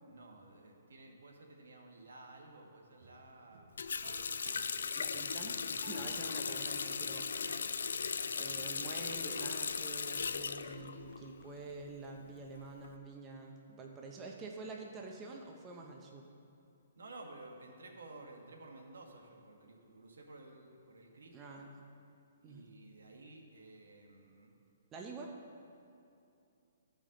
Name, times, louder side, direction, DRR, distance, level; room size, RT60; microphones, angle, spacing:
voice 1, 0.0-3.6 4.4-5.3 5.8-7.5 8.0-9.1 17.0-21.6 22.4-24.5 25.2-25.3, right 2 dB, 90° right, 2 dB, 1.3 m, -54 dB
sound 1, 2.9-3.2 3.5-9.7, right 3 dB, 55° right, 0.8 m, -57 dB
Water tap faucet, 3.8-11.5 11.8-12.9, left 5 dB, 85° left, 0.3 m, -38 dB
voice 2, 5.0-7.3 8.4-16.2 21.3-21.7 22.4-22.7 24.9-25.3, right 3 dB, 20° right, 1 dB, 0.6 m, -47 dB
14.5 x 5.2 x 3.7 m, 2.6 s
hypercardioid pair, 160°, 0 cm